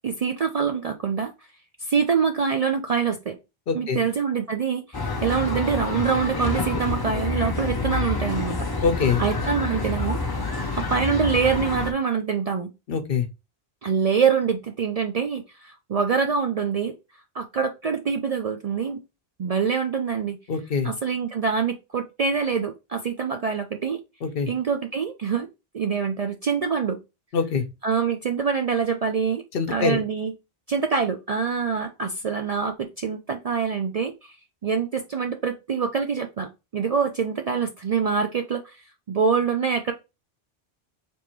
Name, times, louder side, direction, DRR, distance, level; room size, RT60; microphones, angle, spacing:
voice 1, 0.0-1.3 1.8-3.4 3.7-8.7 9.2-12.7 13.8-16.9 17.3-19.0 19.4-20.4 20.8-24.0 24.5-25.5 25.7-27.0 27.8-29.4 29.7-30.3 30.7-34.4 34.6-38.8 39.1-39.9, right 6 dB, 55° right, 0.4 m, -25 dB
voice 2, 3.7-4.0 8.8-9.2 12.9-13.3 20.5-20.9 24.2-24.5 27.3-27.6 29.5-30.0, left 5 dB, 65° left, 0.9 m, -24 dB
sound 1, 4.9-11.9, left 3 dB, 30° left, 0.5 m, -28 dB
3.5 x 2.5 x 4.3 m
omnidirectional pair, 1.1 m